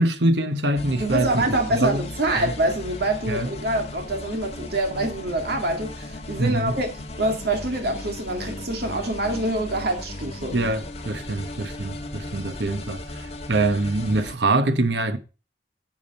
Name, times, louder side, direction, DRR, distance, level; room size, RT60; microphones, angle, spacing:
voice 1, 0.0-1.4 1.7-2.0 2.4-2.5 3.3-3.5 6.4-6.8 10.5-15.2, right 2 dB, 80° right, 1.2 m, -24 dB
sound 1, 0.7-14.3, left 2 dB, 35° left, 1.8 m, -36 dB
voice 2, 1.0-6.9 7.2-10.6, right 1 dB, 65° right, 2.3 m, -25 dB
11.0 x 7.4 x 4.2 m
head